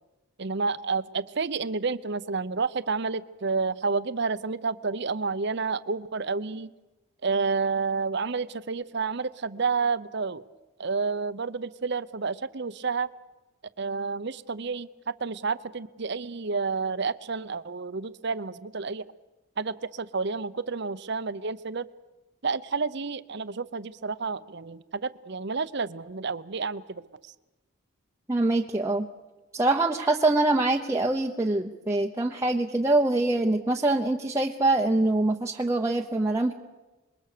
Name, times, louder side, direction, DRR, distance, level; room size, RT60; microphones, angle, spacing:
voice 1, 0.4-6.7 7.2-10.4 10.8-13.1 13.8-19.0 19.6-21.8 22.4-27.0, right 4 dB, 55° right, 15 dB, 0.8 m, -30 dB
voice 2, 28.3-29.1 29.5-36.5, right 2 dB, 15° right, 0 dB, 0.9 m, -24 dB
26.5 x 22.0 x 6.8 m, 1.1 s
head